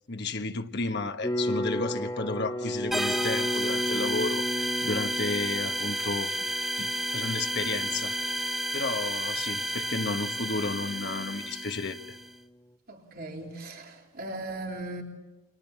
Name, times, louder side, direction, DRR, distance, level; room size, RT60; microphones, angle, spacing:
voice 1, 0.1-6.3 6.8-8.2 8.7-12.2, left 3 dB, 50° left, 1.4 m, -32 dB
sound 1, 1.2-12.3, equal, 15° left, 1.4 m, -35 dB
sound 2, 2.9-12.3, right 1 dB, ahead, 0.9 m, -31 dB
voice 2, 12.9-15.0, right 2 dB, 45° right, 3.7 m, -38 dB
29.5 x 26.5 x 7.3 m
head